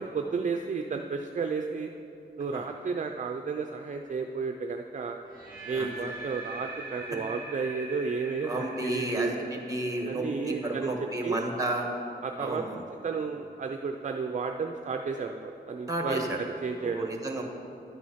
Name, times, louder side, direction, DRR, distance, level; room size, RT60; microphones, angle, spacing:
voice 1, 0.0-1.9 2.4-5.2 5.7-9.3 10.1-10.9 11.2-11.4 12.2-17.1, right 5 dB, 45° right, 5 dB, 0.5 m, -32 dB
sound 1, 5.3-11.3, right 2 dB, 50° left, 2.3 m, -43 dB
voice 2, 5.7-6.0 8.4-11.9 12.4-12.8 15.9-16.4 16.8-17.4, right 1 dB, 20° right, 2 dB, 1.5 m, -32 dB
11.0 x 9.4 x 5.7 m, 2.8 s
wide cardioid pair, 140°, 18 cm